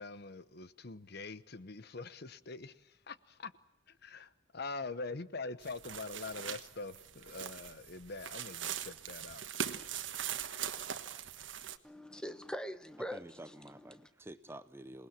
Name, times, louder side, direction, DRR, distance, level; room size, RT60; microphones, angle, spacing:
voice 1, 0.0-2.7 3.1-3.5 4.0-9.5, left 3 dB, 55° left, 1.0 m, -44 dB
sound 1, 5.6-11.8, right 9 dB, 70° right, 1.4 m, -41 dB
voice 2, 11.8-14.1, equal, 5° left, 1.1 m, -43 dB
voice 3, 13.0-15.1, right 1 dB, 15° right, 0.8 m, -49 dB
27.5 x 20.0 x 7.4 m
head